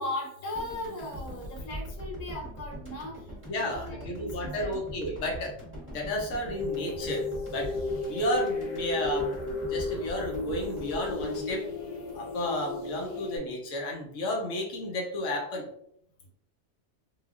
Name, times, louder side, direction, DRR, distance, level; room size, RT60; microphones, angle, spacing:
voice 1, 0.0-4.8, left 1 dB, 40° left, -1 dB, 0.8 m, -38 dB
sound 1, 0.5-12.7, equal, 15° right, 0.7 m, -42 dB
voice 2, 3.5-5.6 5.9-7.8 8.1-9.4 9.6-11.7 12.1-15.7, left 1 dB, 90° left, 0 dB, 1.1 m, -32 dB
sound 2, 6.5-13.4, left 3 dB, 70° left, 0.4 m, -34 dB
3.2 x 2.3 x 2.3 m, 0.70 s
omnidirectional pair, 1.3 m